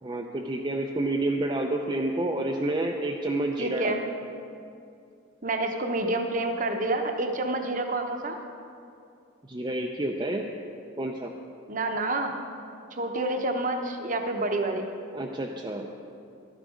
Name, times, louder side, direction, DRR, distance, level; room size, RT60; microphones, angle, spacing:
voice 1, 0.0-4.1 9.5-10.5 11.0-11.3 15.1-15.9, right 1 dB, 20° right, 0 dB, 0.5 m, -29 dB
voice 2, 3.6-4.0 5.4-8.4 11.7-12.3 13.0-14.9, right 2 dB, 40° right, 4 dB, 0.8 m, -28 dB
12.5 x 9.1 x 5.0 m, 2.5 s
head